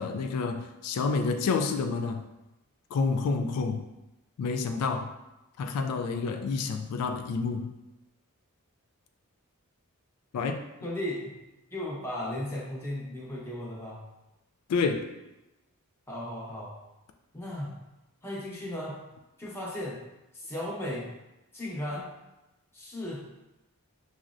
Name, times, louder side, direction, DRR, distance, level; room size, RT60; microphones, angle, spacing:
voice 1, 0.0-2.2 2.9-3.9 4.4-5.1 5.6-7.8 10.3-10.7 14.7-15.1, left 4 dB, 85° left, 6 dB, 0.3 m, -29 dB
voice 2, 10.8-11.3 11.7-14.0 16.1-16.7 17.3-17.7 18.2-19.0 19.4-20.0 20.3-21.1 21.5-22.1 22.7-23.2, left 1 dB, 10° left, -6 dB, 0.9 m, -35 dB
6.0 x 2.1 x 2.5 m, 0.98 s
head